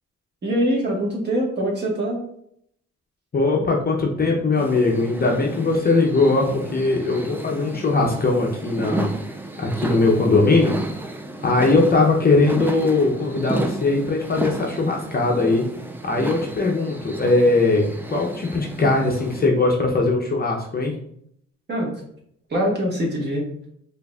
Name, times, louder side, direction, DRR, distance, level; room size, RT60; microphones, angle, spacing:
voice 1, 0.4-2.2 21.7-21.9 22.5-23.4, equal, 35° right, -3 dB, 1.4 m, -23 dB
voice 2, 3.3-9.1 9.6-10.7 11.4-15.7 16.0-20.9, left 3 dB, 30° left, 0 dB, 0.7 m, -20 dB
sound 1, 4.5-19.5, right 1 dB, 5° right, 0.3 m, -32 dB
4.4 x 2.6 x 2.3 m, 0.69 s
cardioid pair, 90°, 30 cm